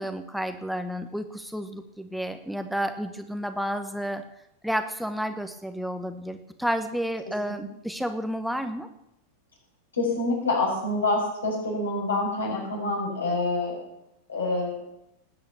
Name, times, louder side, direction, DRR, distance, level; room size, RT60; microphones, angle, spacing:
voice 1, 0.0-4.2 4.6-8.9, equal, ahead, 7 dB, 1.1 m, -31 dB
voice 2, 7.2-7.7 9.9-13.8 14.3-14.8, left 2 dB, 70° left, 0 dB, 6.2 m, -27 dB
19.5 x 8.9 x 7.1 m, 0.84 s
figure-of-eight pair, 90°, 0 cm